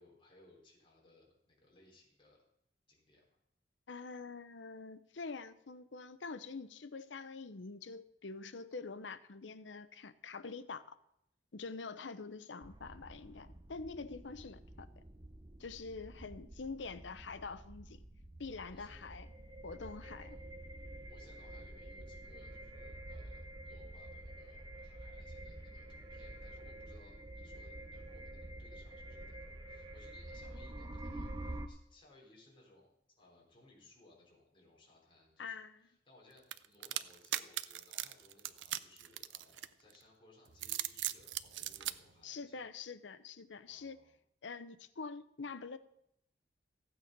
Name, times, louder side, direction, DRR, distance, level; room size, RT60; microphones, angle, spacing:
voice 1, 0.0-2.4 2.9-3.3 18.7-19.0 20.0-20.4 21.1-42.7 43.6-44.2, left 2 dB, 30° left, 4.2 m, -64 dB
voice 2, 3.9-11.0 11.5-15.0 15.6-18.0 18.4-19.3 19.6-20.4 35.4-35.8 42.2-44.0 44.4-45.8, left 4 dB, 90° left, 0.8 m, -46 dB
sound 1, 12.6-31.7, right 1 dB, 25° right, 0.9 m, -48 dB
sound 2, 36.5-40.0 40.5-41.9, right 13 dB, 90° right, 0.5 m, -38 dB
14.5 x 8.9 x 5.2 m
head